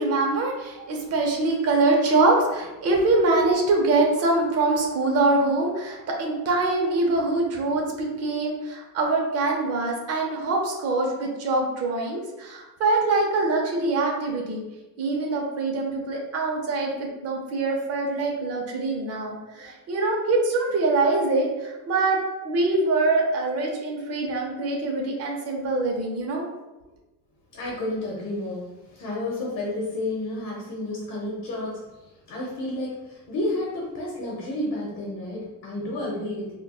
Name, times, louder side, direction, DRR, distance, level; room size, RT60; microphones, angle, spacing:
voice 1, 0.0-14.6 15.0-22.2 22.4-26.4, right 2 dB, 45° right, 0 dB, 0.7 m, -24 dB
voice 2, 27.5-36.5, left 1 dB, 60° left, -4 dB, 0.9 m, -31 dB
4.0 x 2.2 x 2.3 m, 1.0 s
cardioid pair, 160°, 36 cm